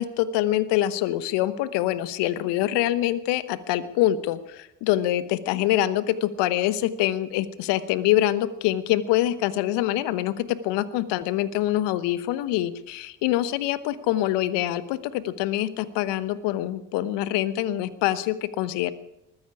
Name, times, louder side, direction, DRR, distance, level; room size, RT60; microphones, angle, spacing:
voice 1, 0.0-10.3 10.6-18.9, left 13 dB, 70° left, 15 dB, 1.1 m, -25 dB
20.0 x 15.0 x 4.7 m, 0.82 s
figure-of-eight pair, 45°, 44 cm